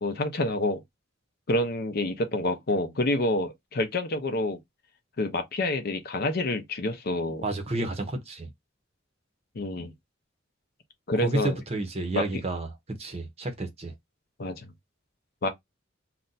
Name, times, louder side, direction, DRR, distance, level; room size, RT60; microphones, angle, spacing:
voice 1, 0.0-0.8 1.5-4.6 5.2-7.4 9.6-9.9 11.1-11.6 12.1-12.2 14.4-14.7 15.4-15.5, left 1 dB, 50° left, 0.6 m, -28 dB
voice 2, 7.4-8.5 11.2-12.7 13.0-13.9, right 2 dB, 30° right, 0.7 m, -30 dB
2.5 x 2.2 x 3.9 m
head